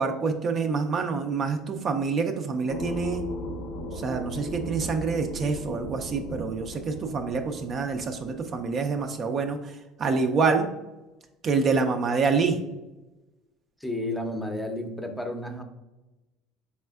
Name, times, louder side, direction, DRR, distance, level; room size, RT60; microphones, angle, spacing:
voice 1, 0.0-3.2 3.9-10.7 11.4-12.6, right 4 dB, 40° right, 5 dB, 0.4 m, -27 dB
sound 1, 2.7-9.0, equal, 80° left, 0.6 m, -37 dB
voice 2, 13.8-15.6, left 1 dB, 5° left, 5 dB, 0.6 m, -32 dB
4.2 x 3.3 x 2.3 m, 1.0 s
supercardioid pair, 90°, 0 cm